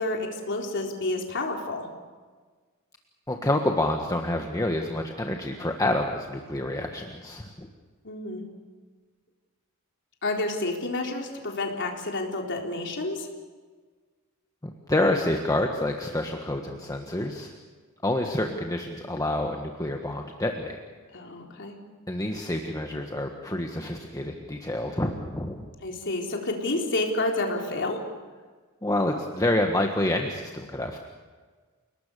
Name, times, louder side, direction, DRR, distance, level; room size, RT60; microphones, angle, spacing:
voice 1, 0.0-1.9 8.0-8.4 10.2-13.3 21.1-21.8 25.8-28.0, left 2 dB, 55° left, 1 dB, 4.0 m, -29 dB
voice 2, 3.3-7.7 14.6-17.5 18.0-20.8 22.1-25.6 28.8-31.0, left 1 dB, 15° left, 3 dB, 1.5 m, -28 dB
30.0 x 19.0 x 6.9 m, 1.4 s
head